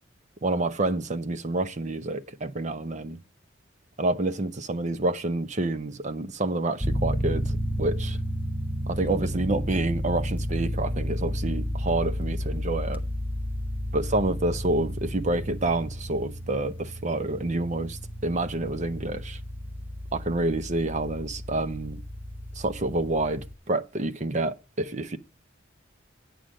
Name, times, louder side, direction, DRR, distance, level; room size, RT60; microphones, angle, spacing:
voice 1, 0.4-3.2 4.0-8.2 8.9-13.0 13.9-19.4 20.1-22.0 22.6-25.2, right 2 dB, 40° right, 0.7 m, -28 dB
sound 1, 6.8-23.5, equal, 10° right, 0.8 m, -32 dB
9.3 x 5.0 x 6.2 m
head